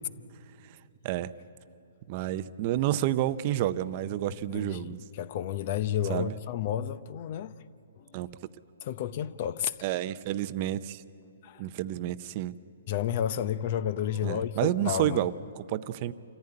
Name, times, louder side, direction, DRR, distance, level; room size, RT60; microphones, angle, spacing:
voice 1, 2.1-5.0 6.1-6.3 8.1-8.3 9.8-11.0 11.6-12.6 14.2-16.1, right 13 dB, 35° right, 0.6 m, -30 dB
voice 2, 4.5-7.5 8.0-8.2 8.8-9.9 11.4-11.7 12.9-15.3, left 10 dB, 45° left, 0.8 m, -31 dB
27.5 x 14.5 x 9.7 m
hypercardioid pair, 155°, 0 cm